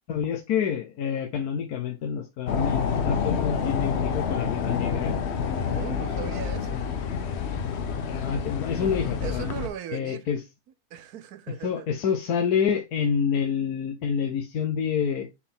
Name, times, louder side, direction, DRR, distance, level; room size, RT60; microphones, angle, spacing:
voice 1, 0.1-5.2 8.1-9.4 9.9-10.4 11.6-15.3, left 7 dB, 80° left, 1.4 m, -27 dB
sound 1, 2.5-9.7, left 6 dB, 55° left, 0.9 m, -28 dB
voice 2, 5.7-6.9 9.2-10.3 10.9-11.9, right 9 dB, 80° right, 1.3 m, -38 dB
6.7 x 4.4 x 3.5 m
omnidirectional pair, 1.6 m